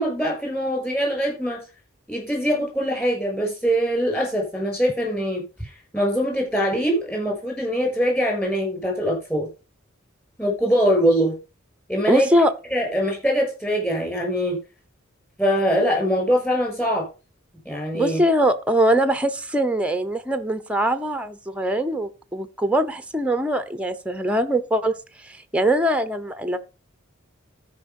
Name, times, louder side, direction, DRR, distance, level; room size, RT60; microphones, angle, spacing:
voice 1, 0.0-1.6 2.1-5.4 5.9-9.5 10.4-11.3 11.9-12.3 12.7-14.6 15.4-17.1 17.6-18.2, equal, 10° left, 6.3 m, -23 dB
voice 2, 12.1-12.5 17.9-24.9 25.2-26.6, right 1 dB, 5° right, 0.7 m, -22 dB
13.0 x 5.2 x 5.3 m
head